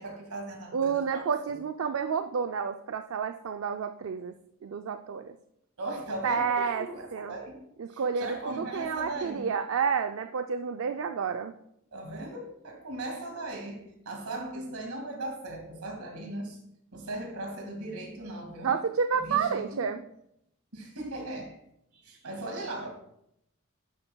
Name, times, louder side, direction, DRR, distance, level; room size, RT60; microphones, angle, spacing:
voice 1, 0.0-1.6 5.8-7.6 7.9-9.5 11.9-16.6 16.9-18.8 19.1-19.9 20.7-21.6 21.9-22.9, right 2 dB, 90° right, 2 dB, 2.0 m, -38 dB
voice 2, 0.7-4.3 4.6-5.4 6.2-6.9 7.1-7.3 7.8-11.5 18.6-20.0, right 6 dB, 70° right, 7 dB, 0.4 m, -30 dB
11.0 x 7.8 x 2.3 m, 0.78 s
head